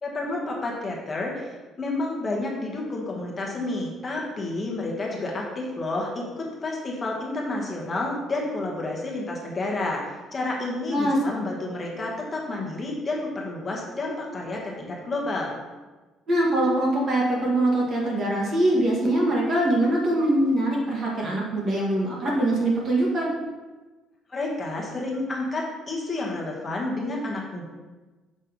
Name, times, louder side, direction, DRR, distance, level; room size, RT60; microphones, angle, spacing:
voice 1, 0.0-10.0 10.3-15.6 24.3-27.7, left 2 dB, 25° left, -2 dB, 1.2 m, -30 dB
voice 2, 16.3-23.3, right 1 dB, 40° right, -4 dB, 1.6 m, -23 dB
6.3 x 3.2 x 5.2 m, 1.2 s
cardioid pair, 155°, 0 cm